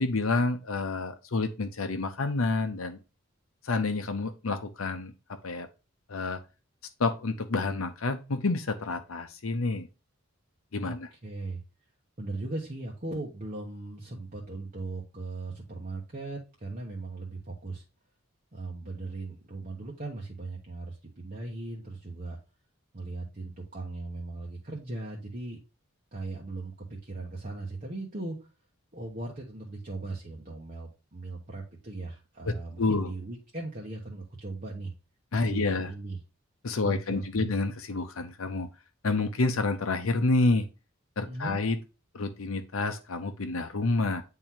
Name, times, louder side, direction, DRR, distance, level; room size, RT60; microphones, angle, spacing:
voice 1, 0.0-3.0 3.6-5.7 6.1-6.4 7.0-9.9 10.7-11.1 32.5-33.1 35.3-35.9 36.6-38.7 39.0-40.7 41.2-41.8 42.1-44.2, left 3 dB, 75° left, 7 dB, 0.8 m, -29 dB
voice 2, 11.2-11.6 12.2-17.8 18.5-22.4 22.9-25.6 26.1-28.5 28.9-34.9 35.4-36.2 36.8-37.4 41.3-41.6, right 2 dB, 40° right, -2 dB, 1.1 m, -38 dB
8.8 x 3.8 x 2.8 m, 0.30 s
head